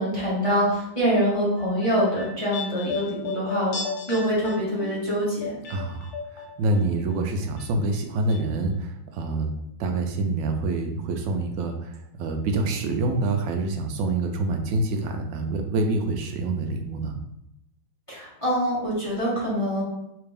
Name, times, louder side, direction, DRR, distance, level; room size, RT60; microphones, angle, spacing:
voice 1, 0.0-3.8 4.1-5.5 18.1-19.8, equal, 20° left, -8 dB, 0.9 m, -25 dB
sound 1, 1.6-6.8 7.1-8.0 8.3-8.4, left 5 dB, 80° left, 1.6 m, -35 dB
voice 2, 5.7-9.5 9.8-17.2, right 2 dB, 75° right, 5 dB, 1.1 m, -26 dB
3.4 x 3.3 x 3.3 m, 0.83 s
omnidirectional pair, 2.3 m